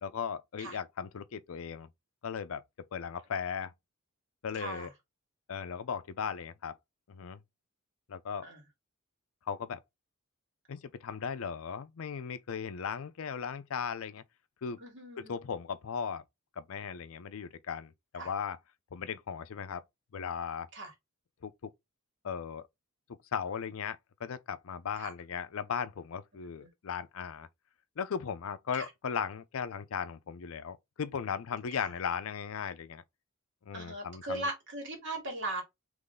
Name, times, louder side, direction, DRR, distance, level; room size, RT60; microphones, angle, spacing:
voice 1, 0.0-1.9 2.2-2.6 2.9-3.7 4.4-4.9 5.5-6.8 7.1-7.4 8.1-8.5 9.5-9.8 10.7-14.2 14.6-14.8 15.2-16.2 16.6-18.6 18.9-19.8 20.1-20.7 21.4-21.7 22.2-22.7 23.3-27.5 28.0-33.0 33.6-34.5, left 7 dB, 70° left, 0.5 m, -37 dB
voice 2, 4.5-4.9 8.4-8.6 14.8-15.3 18.2-18.3 20.7-20.9 25.0-25.1 28.7-28.9 31.8-31.9 33.7-35.6, right 2 dB, 60° right, 2.1 m, -38 dB
3.8 x 3.1 x 3.6 m
head